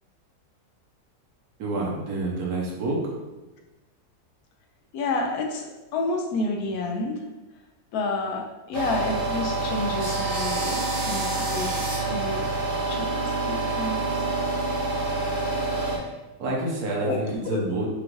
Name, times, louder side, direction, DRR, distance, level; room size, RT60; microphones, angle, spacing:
voice 1, 1.6-3.0 16.4-17.9, right 2 dB, 70° right, -2 dB, 1.3 m, -28 dB
voice 2, 4.9-7.2 7.9-12.5 12.9-14.2 17.0-17.7, left 3 dB, 75° left, 3 dB, 1.0 m, -30 dB
sound 1, 8.7-16.0, right 3 dB, 45° right, 0.8 m, -27 dB
5.1 x 2.4 x 3.1 m, 1.1 s
omnidirectional pair, 1.7 m